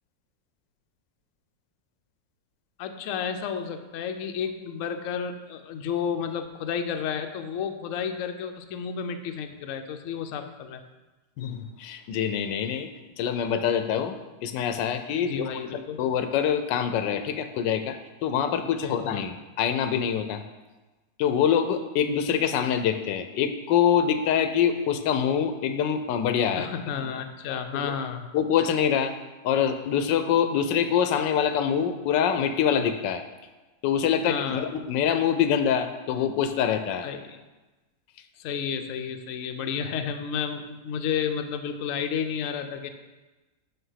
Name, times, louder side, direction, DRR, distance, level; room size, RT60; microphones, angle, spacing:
voice 1, 2.8-10.8 15.2-16.0 18.6-19.3 26.6-28.3 34.2-34.7 37.0-37.4 38.4-42.9, left 7 dB, 70° left, 6 dB, 0.8 m, -32 dB
voice 2, 11.4-12.9 13.2-14.1 14.4-18.0 18.2-20.4 21.2-26.7 27.7-28.0 28.3-29.1 29.4-33.2 33.8-37.1, left 8 dB, 85° left, 9 dB, 1.3 m, -25 dB
5.9 x 5.7 x 5.6 m, 1.2 s
omnidirectional pair, 1.9 m